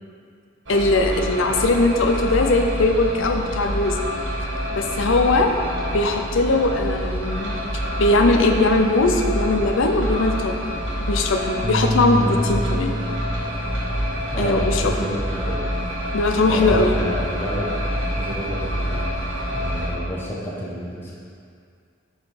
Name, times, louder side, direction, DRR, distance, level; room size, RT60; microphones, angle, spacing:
voice 1, 0.7-4.0 4.7-5.5 5.9-7.6 8.0-10.7 11.0-13.0 14.4-15.2 16.1-16.9, left 2 dB, 70° left, 4 dB, 0.5 m, -20 dB
sound 1, 0.7-19.9, equal, 65° right, 1.1 m, -27 dB
Bass guitar, 11.6-16.1 16.5-17.9, equal, 25° right, 0.4 m, -30 dB
voice 2, 12.1-12.5 14.3-15.6 16.5-17.8 18.2-19.2 19.5-21.1, equal, 10° left, -6 dB, 0.9 m, -29 dB
7.7 x 4.0 x 4.1 m, 2.3 s
head